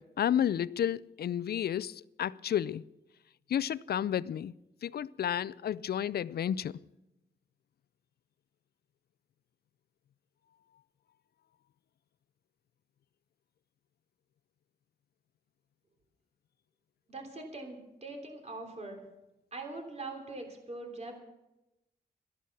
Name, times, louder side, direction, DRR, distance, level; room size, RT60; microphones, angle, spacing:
voice 1, 0.0-2.8 3.5-4.5 4.8-6.7, left 10 dB, 65° left, 0.4 m, -31 dB
voice 2, 17.1-19.0 19.5-21.2, right 2 dB, 40° right, 3.3 m, -42 dB
12.5 x 11.0 x 6.9 m
wide cardioid pair, 105°, 17 cm